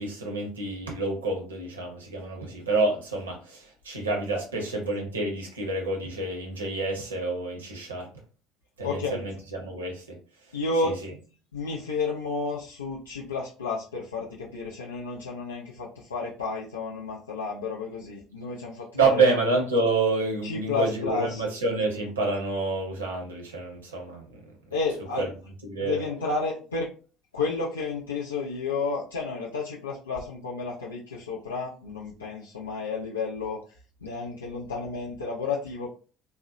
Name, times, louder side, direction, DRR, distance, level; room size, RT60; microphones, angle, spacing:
voice 1, 0.0-8.1 8.8-10.2 10.8-11.1 18.9-24.4 25.2-25.3 25.6-26.0, right 3 dB, 85° right, 1 dB, 0.6 m, -28 dB
voice 2, 8.8-9.2 10.5-11.0 11.5-19.2 20.4-21.4 24.7-25.3 25.8-26.9 27.3-33.6 34.0-35.9, left 4 dB, 85° left, -5 dB, 0.4 m, -31 dB
2.7 x 2.0 x 2.4 m, 0.37 s
figure-of-eight pair, 60°, 0 cm